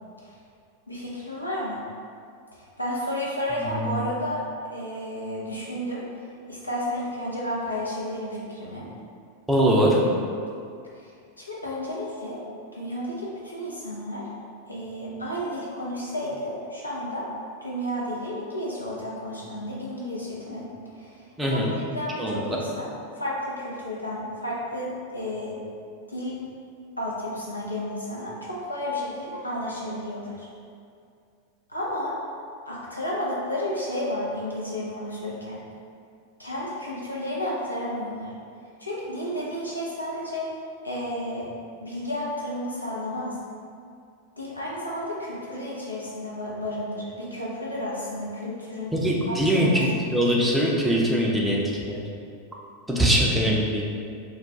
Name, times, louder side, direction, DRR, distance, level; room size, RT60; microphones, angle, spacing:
voice 1, 0.9-1.8 2.5-6.0 6.5-8.9 10.9-12.4 12.7-14.3 14.7-17.3 17.6-20.7 21.0-22.9 23.2-25.6 26.1-26.4 27.0-30.5 31.7-32.2 32.7-35.6 36.4-38.3 38.8-40.6 40.8-41.5 41.8-43.4 44.4-48.9 49.3-49.8, left 1 dB, 85° left, -6 dB, 0.4 m, -32 dB
voice 2, 3.6-4.0 9.5-10.0 21.4-21.7 22.2-22.6 48.9-51.6 51.9-52.0 52.9-53.8, equal, 5° right, -4 dB, 0.5 m, -22 dB
2.3 x 2.2 x 3.9 m, 2.3 s
figure-of-eight pair, 90°, 0 cm